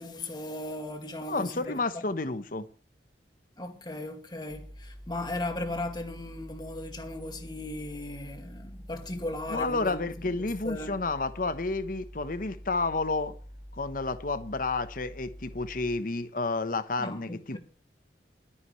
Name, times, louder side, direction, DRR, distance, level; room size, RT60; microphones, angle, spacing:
voice 1, 0.0-2.1 3.6-10.9 17.0-17.6, left 1 dB, 25° left, 2.2 m, -37 dB
voice 2, 1.3-2.7 9.5-13.3 13.7-17.6, left 3 dB, 50° left, 1.1 m, -30 dB
sound 1, 4.5-16.0, equal, 10° right, 6.4 m, -46 dB
21.5 x 10.0 x 3.2 m
head